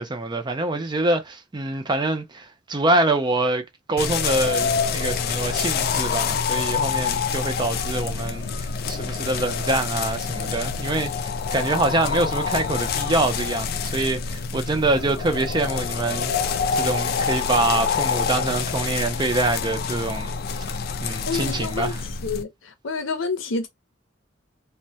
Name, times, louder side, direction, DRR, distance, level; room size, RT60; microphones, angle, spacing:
voice 1, 0.0-16.3 16.7-20.3 21.0-22.0, right 2 dB, 25° right, 0.4 m, -25 dB
sound 1, 4.0-22.4, left 6 dB, 50° left, 0.3 m, -26 dB
voice 2, 21.3-21.9 22.2-22.5 22.8-23.7, left 4 dB, 85° left, 0.6 m, -27 dB
2.2 x 2.1 x 2.7 m
head